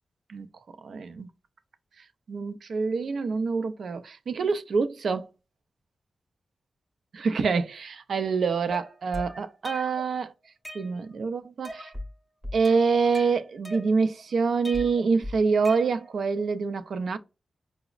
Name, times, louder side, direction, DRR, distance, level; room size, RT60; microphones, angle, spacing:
voice 1, 0.8-1.3 2.3-5.3 7.1-10.3 10.7-11.9 12.5-17.2, right 4 dB, 70° right, 0.4 m, -26 dB
sound 1, 8.7-10.1 10.4-11.3 11.6-12.1 12.4-14.2 14.6-16.3, left 1 dB, 10° right, 0.7 m, -40 dB
4.8 x 2.0 x 2.3 m
wide cardioid pair, 125°, 0 cm